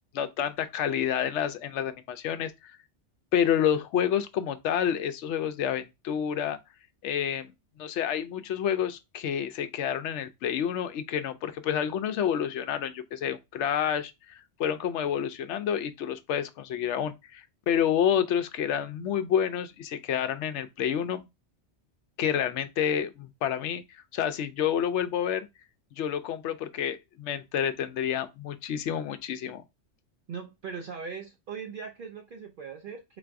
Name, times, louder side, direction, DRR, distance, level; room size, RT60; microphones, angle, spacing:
voice 1, 0.1-2.7 3.3-6.6 7.0-7.5 7.8-21.3 22.2-23.8 24.1-25.5 26.0-29.6, left 9 dB, 80° left, 0.9 m, -29 dB
voice 2, 30.3-33.2, right 6 dB, 55° right, 0.6 m, -39 dB
3.9 x 2.5 x 4.5 m
omnidirectional pair, 1.2 m